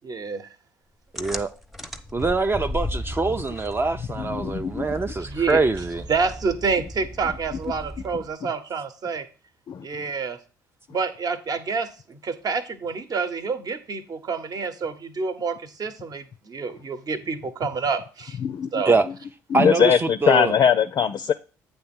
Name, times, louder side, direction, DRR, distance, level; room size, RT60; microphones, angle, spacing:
voice 1, 0.0-0.5 5.2-5.6 6.1-9.3 9.8-10.4 10.9-18.4 18.7-18.9, right 5 dB, 40° right, 1.0 m, -28 dB
voice 2, 1.1-1.5 2.1-6.0 18.9-19.1 19.5-20.5, right 3 dB, 25° right, 0.5 m, -24 dB
sound 1, 1.2-8.3, left 1 dB, ahead, 0.8 m, -36 dB
voice 3, 4.2-4.9 9.7-9.8 18.4-18.7 19.5-21.3, left 7 dB, 45° left, 0.4 m, -21 dB
8.6 x 3.3 x 6.1 m
hypercardioid pair, 50°, 10 cm